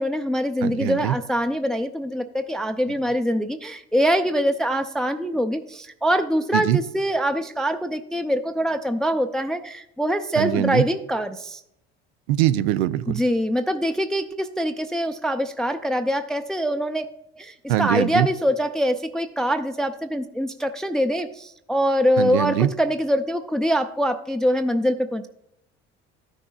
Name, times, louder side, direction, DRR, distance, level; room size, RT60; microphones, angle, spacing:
voice 1, 0.0-11.6 13.1-17.1 17.4-25.3, equal, ahead, 7 dB, 0.5 m, -24 dB
voice 2, 0.6-1.2 6.5-6.8 10.4-10.9 12.3-13.2 17.7-18.3 22.2-22.7, right 13 dB, 85° right, 14 dB, 0.5 m, -22 dB
13.5 x 6.3 x 2.3 m, 0.78 s
hypercardioid pair, 70°, 31 cm